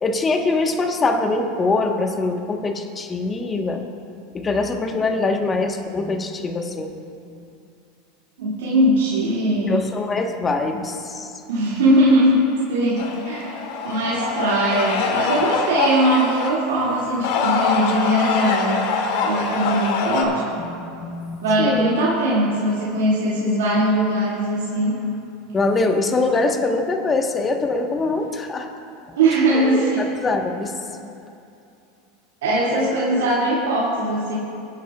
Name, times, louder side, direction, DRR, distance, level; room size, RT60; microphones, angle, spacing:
voice 1, 0.0-3.9 4.3-6.9 9.7-11.4 20.8-21.9 25.5-28.7 29.6-30.7 32.7-33.3, left 3 dB, 25° left, 4 dB, 1.2 m, -23 dB
voice 2, 8.4-9.8 11.5-12.4 12.7-13.6 13.8-18.8 19.2-20.4 21.4-25.0 29.2-30.0 32.4-34.3, right 1 dB, 80° right, -8 dB, 2.3 m, -20 dB
sound 1, 13.0-16.5 17.1-20.2, left 5 dB, 65° left, 1.6 m, -24 dB
23.5 x 10.0 x 2.4 m, 2.6 s
hypercardioid pair, 105°, 0 cm